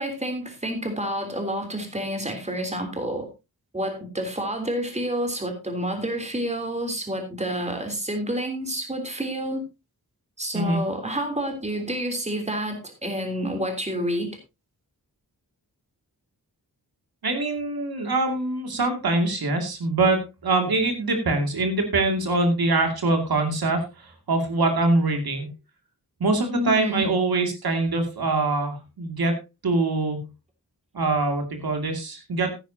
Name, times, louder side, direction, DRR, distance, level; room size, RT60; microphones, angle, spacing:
voice 1, 0.0-3.3 3.7-9.6 10.4-14.4 26.5-27.1, right 1 dB, 20° right, 4 dB, 3.3 m, -29 dB
voice 2, 17.2-25.5 26.2-29.4 29.6-30.2 30.9-32.6, right 2 dB, 75° right, 4 dB, 2.5 m, -24 dB
15.5 x 10.0 x 2.8 m, 0.26 s
wide cardioid pair, 130°, 37 cm